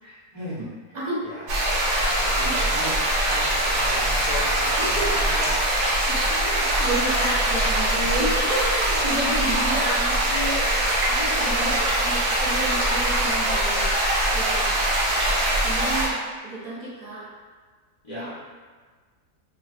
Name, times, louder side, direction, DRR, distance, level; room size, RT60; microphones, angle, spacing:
voice 1, 0.0-1.5 2.2-5.6 8.0-8.1 18.0-18.3, left 1 dB, 30° left, -13 dB, 0.5 m, -38 dB
sound 1, 1.5-16.1, right 1 dB, 85° right, 1.4 m, -22 dB
voice 2, 6.4-10.7 11.1-14.8 15.6-16.2 16.4-17.3 18.1-18.2, right 2 dB, 45° right, -8 dB, 0.5 m, -31 dB
3.1 x 2.6 x 2.4 m, 1.5 s
omnidirectional pair, 1.8 m